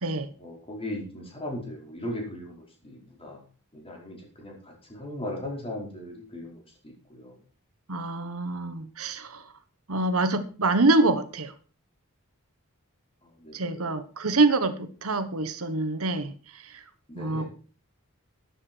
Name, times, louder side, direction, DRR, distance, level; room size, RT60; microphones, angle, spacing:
voice 1, 0.4-3.4 3.7-7.4 13.4-13.9 17.1-17.5, left 1 dB, 25° left, -1 dB, 5.0 m, -38 dB
voice 2, 7.9-9.4 9.9-11.5 13.5-16.8 17.1-17.5, right 2 dB, 75° right, 10 dB, 1.3 m, -26 dB
13.5 x 9.8 x 4.6 m, 0.38 s
head